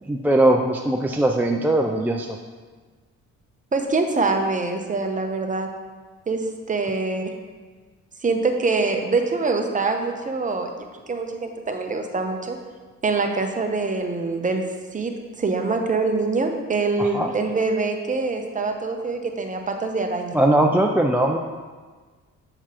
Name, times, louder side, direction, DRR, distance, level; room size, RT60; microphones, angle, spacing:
voice 1, 0.0-2.4 17.0-17.3 20.3-21.4, right 1 dB, 5° right, 2 dB, 0.3 m, -20 dB
voice 2, 3.7-5.7 6.3-7.3 8.2-10.7 11.1-12.6 13.0-14.6 14.9-15.1 15.4-20.4, right 3 dB, 25° right, 4 dB, 0.8 m, -24 dB
6.6 x 6.0 x 2.9 m, 1.4 s
cardioid pair, 90°, 30 cm